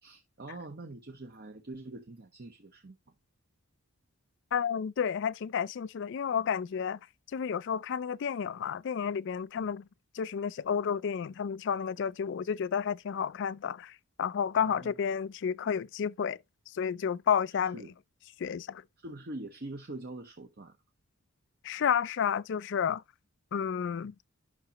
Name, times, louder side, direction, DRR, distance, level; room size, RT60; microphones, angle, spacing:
voice 1, 0.0-3.0 9.6-9.7 14.6-15.0 17.7-17.9 19.0-20.8, right 2 dB, 45° right, 0.9 m, -44 dB
voice 2, 4.5-7.0 7.3-9.8 10.1-13.9 14.2-16.4 16.7-17.8 18.4-18.8 21.6-23.0 23.5-24.1, left 7 dB, 55° left, 0.3 m, -31 dB
9.6 x 5.9 x 2.9 m
head